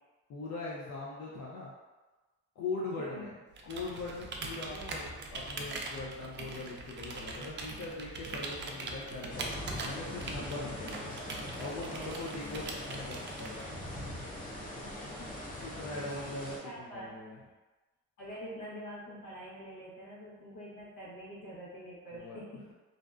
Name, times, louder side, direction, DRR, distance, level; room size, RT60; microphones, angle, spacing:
voice 1, 0.3-1.7 2.6-3.3 3.6-11.1 11.6-13.7 15.6-17.4 22.1-22.4, left 3 dB, 65° left, -4 dB, 0.5 m, -41 dB
Computer keyboard, 3.5-13.8, right 3 dB, 40° right, 0.4 m, -42 dB
sound 1, 9.3-16.6, left 1 dB, 30° left, 0.7 m, -41 dB
voice 2, 16.6-17.2 18.2-22.6, equal, 85° left, -6 dB, 0.9 m, -45 dB
2.5 x 2.1 x 2.4 m, 1.2 s
cardioid pair, 90°, 30 cm